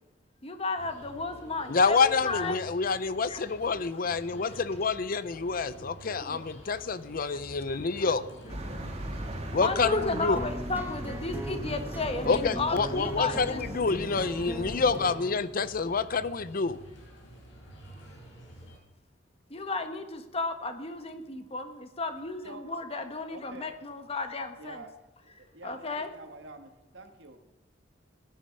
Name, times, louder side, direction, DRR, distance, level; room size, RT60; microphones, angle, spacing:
voice 1, 0.4-2.7 3.3-3.4 4.5-4.6 6.2-6.5 7.3-7.4 7.7-8.2 9.5-13.6 19.5-24.8 25.6-26.1, left 3 dB, 30° left, 7 dB, 1.3 m, -34 dB
sound 1, 0.8-18.8, right 1 dB, 85° left, 5.8 m, -49 dB
voice 2, 1.7-8.2 9.5-10.4 12.2-16.8, left 4 dB, 50° left, 15 dB, 0.6 m, -27 dB
sound 2, 8.5-15.0, right 1 dB, 35° right, 2.5 m, -39 dB
sound 3, 10.4-15.4, right 1 dB, 10° right, 0.7 m, -40 dB
voice 3, 23.3-23.8 24.6-24.9 25.2-27.4, right 2 dB, 80° right, 5 dB, 1.9 m, -47 dB
17.0 x 10.0 x 5.4 m, 1.0 s
head